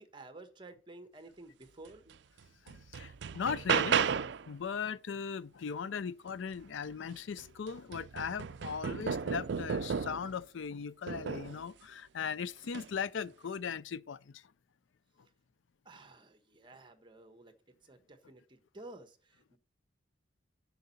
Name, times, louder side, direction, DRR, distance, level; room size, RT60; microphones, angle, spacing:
voice 1, 0.0-2.1 15.8-17.5 17.8-19.6, right 2 dB, 25° right, 1.1 m, -52 dB
sound 1, 2.1-2.2 2.7-4.5 6.9-7.0 7.4-10.4 11.1-11.6 12.6-12.9, right 7 dB, 65° right, 0.4 m, -33 dB
voice 2, 2.6-14.5, left 6 dB, 80° left, 0.4 m, -38 dB
7.6 x 7.1 x 4.1 m
head